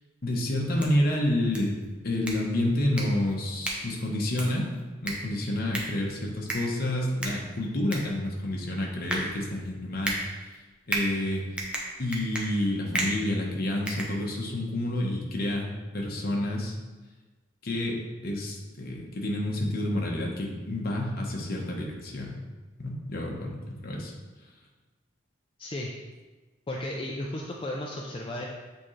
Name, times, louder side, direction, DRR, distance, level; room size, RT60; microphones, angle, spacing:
voice 1, 0.2-1.7 2.0-4.7 5.0-10.2 10.9-11.4 12.0-16.7 17.6-22.4 22.8-24.1, left 1 dB, 55° left, -1 dB, 1.0 m, -29 dB
sound 1, 0.6-14.7, right 1 dB, 5° right, 0.8 m, -37 dB
voice 2, 25.6-25.9 26.7-28.5, left 1 dB, 30° left, -2 dB, 0.5 m, -34 dB
8.1 x 3.7 x 3.2 m, 1.3 s
head